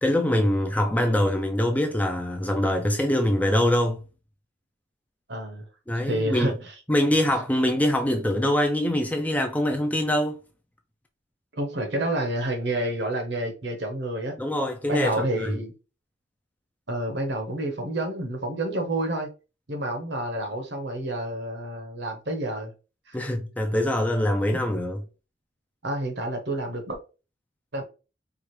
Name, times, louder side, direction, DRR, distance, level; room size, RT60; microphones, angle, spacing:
voice 1, 0.0-4.0 5.9-6.6 6.9-10.4 14.4-15.6 23.1-25.0, left 1 dB, 10° left, 0.4 m, -24 dB
voice 2, 5.3-5.7 6.0-6.7 11.5-14.4 14.9-15.7 16.9-19.3 19.7-22.7 23.1-23.2 25.8-27.0 27.7-27.8, right 1 dB, 60° right, 1.0 m, -29 dB
4.7 x 2.4 x 3.1 m
head